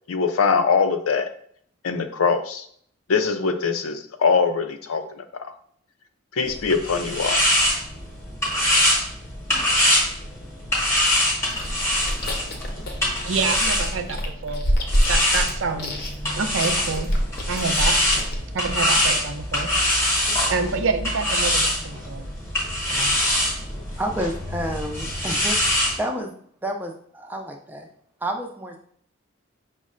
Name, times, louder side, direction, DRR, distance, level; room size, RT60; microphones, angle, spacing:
voice 1, 0.1-1.3 1.8-2.7 3.1-5.5 6.3-7.4, left 5 dB, 90° left, 8 dB, 0.5 m, -22 dB
sound 1, 6.5-14.3 14.9-26.0, left 1 dB, 15° left, 0.9 m, -24 dB
Chewing mastication, 11.5-18.4, equal, 50° left, 0.6 m, -27 dB
voice 2, 13.2-14.6 15.1-17.1 17.5-18.0 18.5-20.1 20.5-22.3 22.9-23.1, right 4 dB, 75° right, 7 dB, 0.5 m, -27 dB
voice 3, 24.0-26.3 26.6-27.9 28.2-28.8, right 1 dB, 10° right, 3 dB, 0.4 m, -30 dB
5.1 x 2.1 x 3.7 m, 0.62 s
head